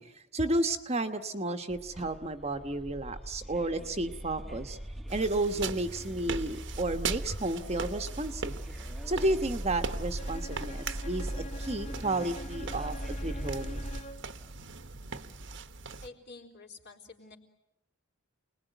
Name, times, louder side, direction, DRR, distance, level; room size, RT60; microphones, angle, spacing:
voice 1, 0.0-4.8 5.1-8.6 9.1-12.9 13.2-13.8, right 2 dB, 30° right, 6 dB, 1.2 m, -32 dB
sound 1, 1.7-14.0, right 1 dB, ahead, 1.1 m, -40 dB
sound 2, 5.1-16.1, right 5 dB, 55° right, 1.2 m, -41 dB
Bowed string instrument, 10.2-14.4, left 1 dB, 30° left, 1.1 m, -46 dB
voice 2, 16.0-17.4, left 3 dB, 50° left, 2 dB, 4.0 m, -49 dB
29.0 x 20.5 x 9.2 m, 0.86 s
head